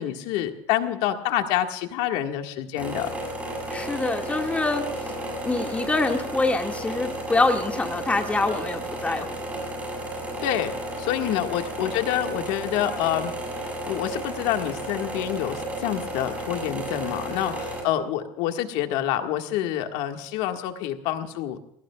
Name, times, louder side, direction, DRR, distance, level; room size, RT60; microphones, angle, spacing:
voice 1, 0.0-3.1 10.4-10.7 11.0-13.3 13.9-21.6, left 12 dB, 90° left, 5 dB, 1.8 m, -27 dB
sound 1, 2.8-17.8, right 1 dB, 10° right, 6.8 m, -33 dB
voice 2, 3.7-5.1 5.4-9.3 11.2-11.4, left 3 dB, 10° left, 3 dB, 1.9 m, -25 dB
29.5 x 18.5 x 2.4 m, 0.77 s
cardioid pair, 150°, 11 cm